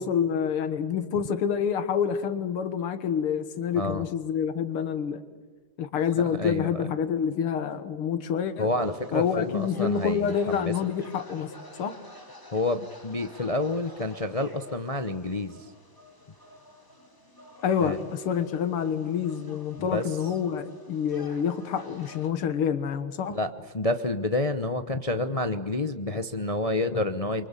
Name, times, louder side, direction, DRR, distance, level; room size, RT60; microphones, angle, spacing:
voice 1, 0.0-5.2 5.8-8.7 9.1-11.5 11.8-11.9 17.6-23.4, left 7 dB, 90° left, 11 dB, 2.4 m, -27 dB
voice 2, 3.7-4.1 6.2-7.0 8.6-10.7 12.5-15.7 17.8-18.0 19.8-20.1 23.3-27.5, left 2 dB, 55° left, 9 dB, 0.4 m, -29 dB
sound 1, 8.8-22.3, left 1 dB, 10° left, 2.9 m, -50 dB
28.0 x 24.5 x 8.3 m, 1.4 s
omnidirectional pair, 2.3 m